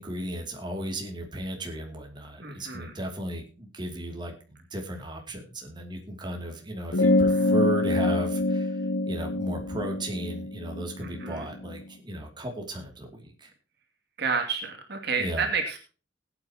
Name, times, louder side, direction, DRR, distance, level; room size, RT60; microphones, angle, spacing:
voice 1, 0.0-8.8 9.1-13.5 15.2-15.5, right 1 dB, 25° right, 2 dB, 2.7 m, -35 dB
voice 2, 2.4-2.9 7.3-7.6 11.0-11.5 14.2-15.8, right 5 dB, 60° right, 4 dB, 2.5 m, -30 dB
sound 1, 6.9-11.8, left 2 dB, 80° left, 1.1 m, -25 dB
20.0 x 9.0 x 2.9 m, 0.35 s
head